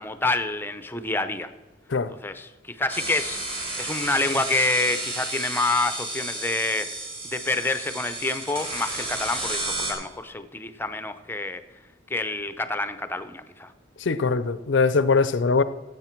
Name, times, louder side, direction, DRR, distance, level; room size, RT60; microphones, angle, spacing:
voice 1, 0.0-1.5 2.2-6.9 7.2-11.6 12.1-13.7, left 2 dB, 10° left, 0.6 m, -27 dB
sound 1, 2.9-9.9, right 2 dB, 30° right, 3.4 m, -32 dB
voice 2, 14.0-15.6, left 4 dB, 70° left, 0.5 m, -21 dB
16.0 x 7.9 x 4.5 m
head